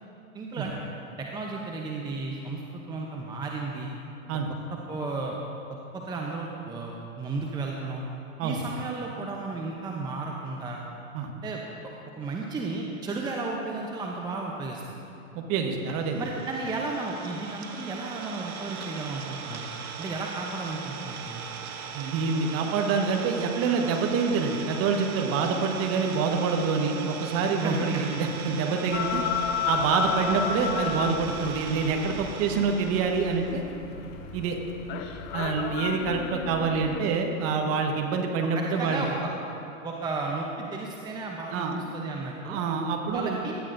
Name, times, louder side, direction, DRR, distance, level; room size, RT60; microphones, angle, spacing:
voice 1, 0.3-0.9 1.2-3.9 4.7-5.4 5.9-8.0 8.4-10.8 11.4-15.0 16.2-19.7 20.0-21.5 27.6-28.0 38.5-39.3 39.8-42.6 43.1-43.5, right 3 dB, 10° right, -1 dB, 0.7 m, -34 dB
voice 2, 15.5-16.2 21.9-29.2 29.7-33.6 34.3-34.6 35.3-39.0 41.5-41.8 42.4-43.5, right 5 dB, 35° right, 3 dB, 1.3 m, -26 dB
Idling, 15.9-33.6, right 6 dB, 90° right, 1.1 m, -39 dB
sound 1, 28.9-37.0, left 6 dB, 25° left, 0.6 m, -33 dB
17.0 x 12.0 x 2.6 m, 2.9 s
hypercardioid pair, 115°, 43 cm